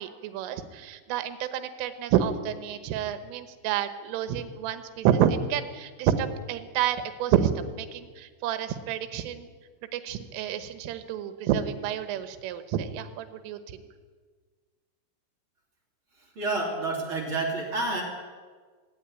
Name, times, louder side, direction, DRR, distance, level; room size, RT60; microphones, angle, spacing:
voice 1, 0.0-9.5 9.9-13.8, right 9 dB, 85° right, 9 dB, 3.7 m, -29 dB
voice 2, 16.3-18.0, right 2 dB, 30° right, 0 dB, 3.2 m, -29 dB
17.5 x 16.5 x 9.9 m, 1.5 s
omnidirectional pair, 5.7 m